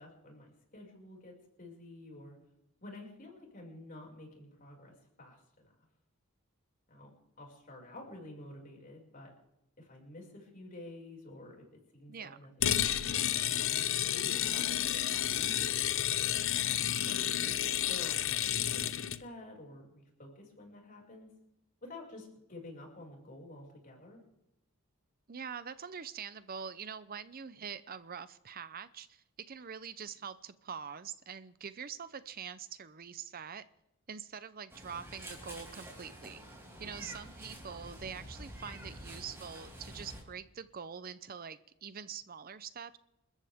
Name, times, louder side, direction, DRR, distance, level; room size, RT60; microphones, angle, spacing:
voice 1, 0.0-2.4 2.8-5.7 6.9-9.3 9.8-11.6 11.9-13.7 14.1-15.8 17.0-17.6 17.9-21.3 21.8-24.2 37.0-37.2, left 2 dB, 40° left, 0 dB, 6.0 m, -50 dB
sound 1, 12.6-19.2, left 11 dB, 60° left, 0.8 m, -31 dB
voice 2, 17.0-17.5 25.3-33.6 34.1-36.4 36.8-43.0, right 7 dB, 40° right, 14 dB, 0.6 m, -44 dB
Meow, 34.7-40.2, right 1 dB, 10° right, 5.3 m, -48 dB
29.0 x 13.5 x 3.6 m, 0.89 s
head